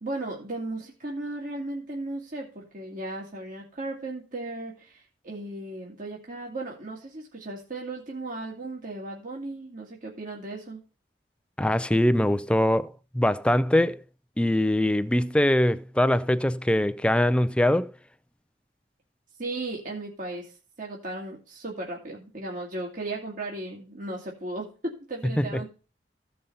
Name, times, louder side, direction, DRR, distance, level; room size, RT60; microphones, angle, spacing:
voice 1, 0.0-10.8 19.4-25.7, right 2 dB, 50° right, 2.1 m, -36 dB
voice 2, 11.6-14.0 14.4-17.9 25.4-25.5, left 1 dB, 5° left, 0.4 m, -22 dB
15.0 x 5.5 x 5.5 m
head